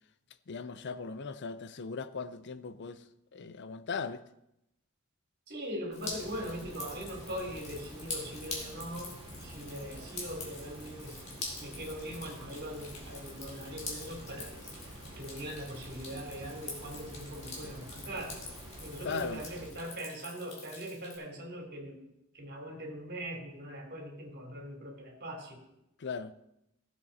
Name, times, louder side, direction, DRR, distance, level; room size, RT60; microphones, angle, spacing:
voice 1, 0.5-3.0 3.3-4.2 19.0-19.4 26.0-26.3, left 5 dB, 55° left, 0.6 m, -38 dB
voice 2, 5.5-9.1 9.4-11.2 11.6-14.5 15.1-18.3 18.8-22.0 22.3-25.6, equal, 50° right, 3.3 m, -41 dB
Drip, 5.9-21.2, left 3 dB, 30° left, 2.9 m, -45 dB
sound 1, 6.0-19.7, right 1 dB, 25° right, 2.9 m, -48 dB
16.5 x 7.6 x 4.1 m
head